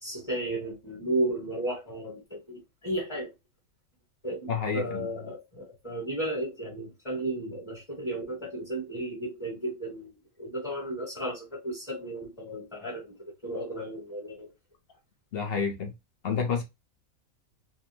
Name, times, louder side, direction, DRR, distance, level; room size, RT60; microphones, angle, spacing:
voice 1, 0.0-3.3 4.2-14.5, right 1 dB, 25° left, 0.9 m, -34 dB
voice 2, 4.5-5.1 15.3-15.9 16.2-16.6, left 6 dB, 55° left, 0.7 m, -29 dB
2.6 x 2.1 x 3.1 m
omnidirectional pair, 1.5 m